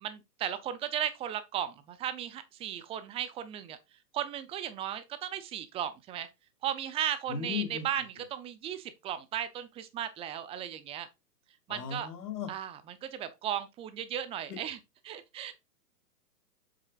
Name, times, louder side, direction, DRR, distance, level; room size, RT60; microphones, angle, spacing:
voice 1, 0.0-3.8 4.1-6.3 6.6-11.1 11.7-12.1 12.5-15.5, right 10 dB, 10° right, 0.5 m, -36 dB
voice 2, 7.3-7.8 11.7-12.5 14.5-14.6, left 7 dB, 70° left, 3.4 m, -36 dB
7.8 x 6.4 x 2.4 m
hypercardioid pair, 125°, 48 cm